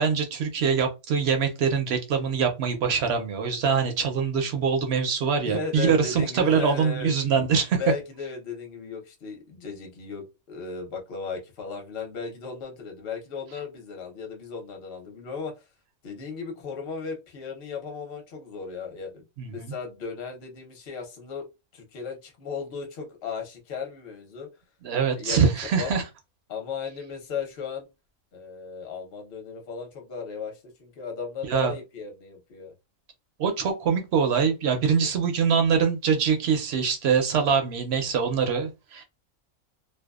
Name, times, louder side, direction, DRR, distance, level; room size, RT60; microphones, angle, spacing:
voice 1, 0.0-7.8 19.4-19.7 24.8-26.0 31.5-31.7 33.4-39.0, right 6 dB, 65° right, 0.7 m, -24 dB
voice 2, 5.4-7.1 7.8-15.6 16.0-19.2 19.5-21.5 21.7-24.5 25.1-25.9 26.5-27.9 28.3-32.7 34.8-35.1, left 5 dB, 50° left, 0.9 m, -36 dB
2.6 x 2.2 x 2.3 m
omnidirectional pair, 1.5 m